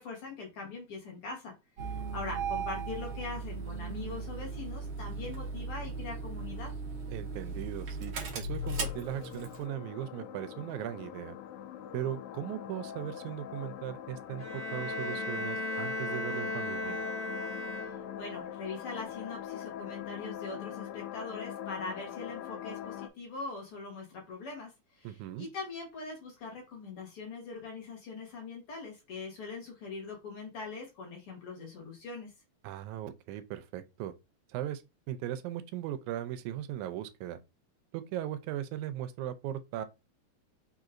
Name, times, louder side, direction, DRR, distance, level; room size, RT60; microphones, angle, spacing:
voice 1, 0.0-1.5 1.9-6.7 17.8-32.3, left 3 dB, 55° left, 2.1 m, -42 dB
Engine starting, 1.8-9.6, right 3 dB, 65° right, 1.1 m, -37 dB
voice 2, 7.1-11.4 11.9-17.0 25.0-25.5 32.6-34.1 34.5-34.8 35.1-37.4 37.9-39.9, right 12 dB, 90° right, 2.0 m, -38 dB
sound 1, 8.6-23.1, left 10 dB, 80° left, 1.8 m, -43 dB
Bowed string instrument, 14.4-18.3, left 1 dB, 20° left, 1.2 m, -36 dB
4.7 x 3.9 x 2.5 m
omnidirectional pair, 3.3 m